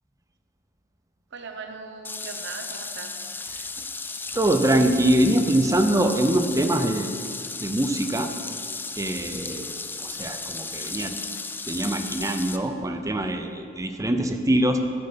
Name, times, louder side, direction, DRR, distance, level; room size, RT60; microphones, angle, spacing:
voice 1, 1.3-3.2 9.3-9.8, right 4 dB, 60° right, 6 dB, 0.8 m, -40 dB
sound 1, 2.0-12.6, left 3 dB, 10° left, 0.4 m, -35 dB
voice 2, 4.3-7.2 7.6-8.3 9.0-9.7 10.0-11.1 11.7-14.8, right 1 dB, 15° right, 6 dB, 0.7 m, -23 dB
11.5 x 9.0 x 5.8 m, 2.4 s
head